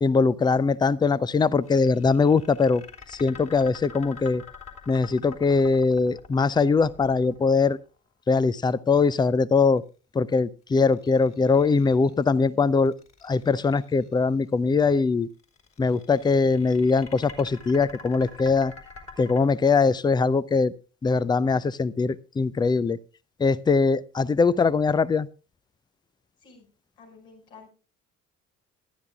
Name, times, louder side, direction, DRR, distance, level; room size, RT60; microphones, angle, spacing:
voice 1, 0.0-4.4 4.9-7.8 8.3-9.8 10.1-12.9 13.2-15.3 15.8-18.7 19.2-20.7 21.0-23.0 23.4-25.3, left 4 dB, 10° left, 21 dB, 0.5 m, -22 dB
sound 1, 1.6-7.9 10.7-12.2 12.8-14.1 15.4-19.4, left 4 dB, 40° left, 3.8 m, -46 dB
voice 2, 11.6-12.7 26.4-26.7 27.0-27.7, left 5 dB, 65° left, 0 dB, 5.6 m, -52 dB
19.5 x 12.0 x 2.3 m, 0.32 s
figure-of-eight pair, 50°, 40 cm